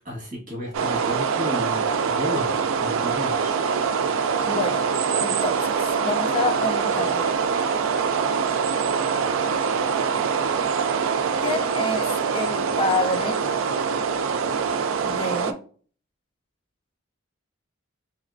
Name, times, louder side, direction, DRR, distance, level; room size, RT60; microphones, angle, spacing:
voice 1, 0.1-3.6, left 1 dB, 40° right, -3 dB, 1.6 m, -33 dB
sound 1, 0.7-15.5, right 6 dB, 70° right, 0.4 m, -24 dB
voice 2, 4.5-4.8 5.2-7.4 11.4-13.4 15.0-15.6, left 2 dB, 25° left, 5 dB, 0.5 m, -28 dB
4.1 x 2.9 x 2.5 m, 0.42 s
head